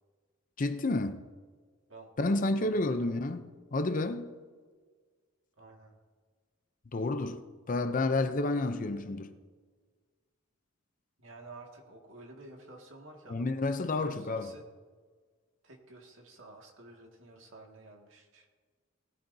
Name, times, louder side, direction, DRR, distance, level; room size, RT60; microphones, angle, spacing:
voice 1, 0.6-1.2 2.2-4.4 6.9-9.3 13.3-14.5, left 2 dB, 40° left, 0.6 m, -30 dB
voice 2, 1.9-3.2 5.6-5.9 11.2-13.7 14.0-14.6 15.6-18.5, right 2 dB, 65° right, 2.0 m, -51 dB
18.5 x 12.5 x 2.7 m
head